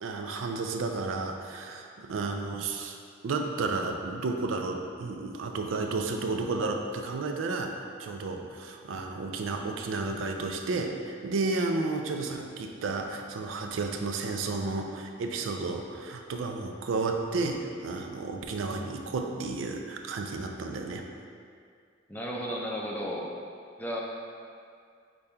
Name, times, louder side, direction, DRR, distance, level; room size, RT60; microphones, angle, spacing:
voice 1, 0.0-3.0 3.2-21.1, right 3 dB, 85° right, 3 dB, 0.4 m, -32 dB
voice 2, 22.1-23.3 23.8-24.0, equal, 10° left, -2 dB, 0.5 m, -33 dB
5.2 x 2.3 x 4.2 m, 2.3 s
head